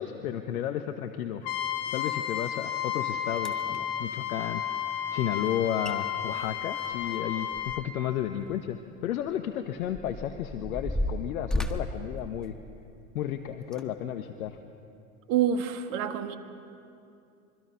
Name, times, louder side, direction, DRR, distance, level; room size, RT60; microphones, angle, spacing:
voice 1, 0.0-1.4 1.9-4.6 5.1-12.5 13.1-14.6, left 10 dB, 75° left, 7 dB, 1.2 m, -33 dB
Trumpet, 1.4-7.8, left 10 dB, 55° left, 1.8 m, -32 dB
sound 1, 2.9-3.0 3.4-3.8 5.5-5.6 5.8-6.0 6.3-8.1 8.4-8.6 9.3-13.0 13.6-13.8 14.5-14.6, left 1 dB, ahead, 1.6 m, -34 dB
voice 2, 15.3-16.4, right 9 dB, 65° right, 7 dB, 2.0 m, -27 dB
25.5 x 24.0 x 5.8 m, 2.6 s
hypercardioid pair, 85°, 43 cm